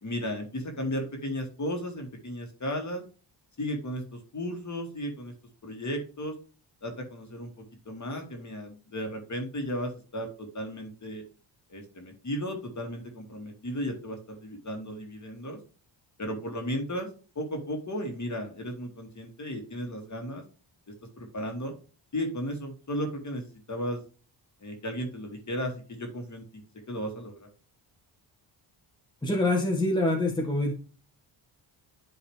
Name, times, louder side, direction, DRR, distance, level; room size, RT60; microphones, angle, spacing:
voice 1, 0.0-3.0 3.6-5.3 5.6-6.3 6.8-11.2 11.7-15.6 16.2-17.1 17.4-20.4 21.2-21.7 22.1-24.0 24.6-26.6 26.9-27.5, equal, 35° left, 3 dB, 2.4 m, -35 dB
voice 2, 29.2-30.7, left 2 dB, 10° left, -1 dB, 1.6 m, -25 dB
10.5 x 3.9 x 3.3 m, 0.36 s
cardioid pair, 95°, 48 cm